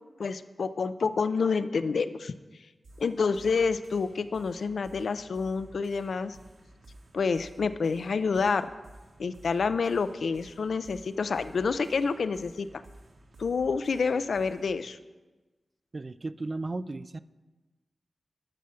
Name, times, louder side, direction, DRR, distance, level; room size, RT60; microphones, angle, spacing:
voice 1, 0.2-2.3 3.0-6.4 7.1-8.7 9.2-12.7 13.4-15.0, left 5 dB, 80° left, 13 dB, 0.4 m, -28 dB
sound 1, 2.8-14.8, right 1 dB, 70° right, 1.5 m, -53 dB
voice 2, 15.9-17.2, right 2 dB, 35° right, 15 dB, 0.3 m, -35 dB
11.5 x 5.7 x 6.2 m, 1.2 s
wide cardioid pair, 100°, 0 cm